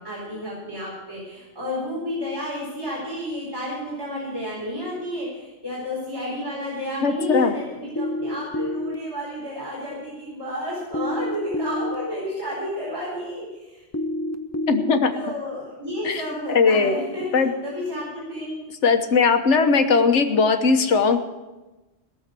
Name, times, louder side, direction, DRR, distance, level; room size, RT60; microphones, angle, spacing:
voice 1, 0.0-13.8 15.1-18.6, left 1 dB, 20° right, -6 dB, 4.5 m, -31 dB
voice 2, 7.0-7.5 14.7-15.1 16.0-16.2 16.5-16.9 17.3-17.5 18.8-21.2, left 4 dB, 80° left, 7 dB, 1.4 m, -19 dB
sound 1, 8.0-8.9 10.9-11.9 13.9-14.9, left 1 dB, 20° left, 0.6 m, -27 dB
18.0 x 7.0 x 7.6 m, 1.1 s
omnidirectional pair, 1.2 m